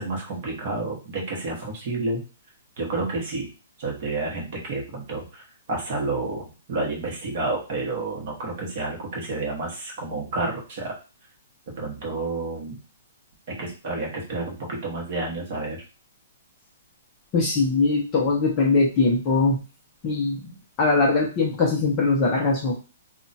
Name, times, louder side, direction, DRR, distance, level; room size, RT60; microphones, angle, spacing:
voice 1, 0.0-2.2 2.8-3.5 3.8-11.0 11.7-12.8 13.5-15.8, right 2 dB, 30° right, -1 dB, 0.9 m, -30 dB
voice 2, 17.3-19.6 20.0-22.7, left 3 dB, 20° left, -2 dB, 0.5 m, -21 dB
2.3 x 2.1 x 3.9 m, 0.33 s
hypercardioid pair, 175°, 0 cm